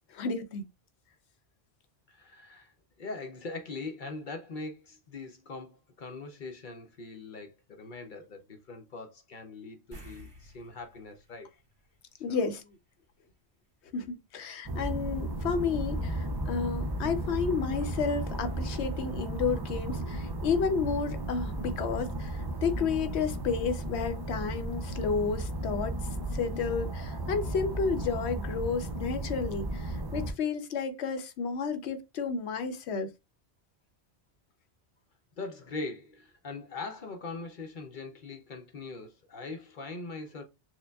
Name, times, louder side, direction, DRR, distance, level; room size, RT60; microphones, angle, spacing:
voice 1, 0.1-0.6 12.2-12.6 13.9-26.0 26.3-33.1, left 5 dB, 85° left, 0.9 m, -31 dB
voice 2, 2.1-11.5 12.3-12.5 35.4-40.4, left 3 dB, 55° left, 0.7 m, -41 dB
sound 1, 9.9-12.7 13.0-13.2 16.1-16.2 16.5-16.6, equal, 25° right, 1.2 m, -52 dB
sound 2, 14.7-30.3, right 1 dB, 40° right, 0.3 m, -34 dB
6.4 x 2.2 x 2.2 m
omnidirectional pair, 1.1 m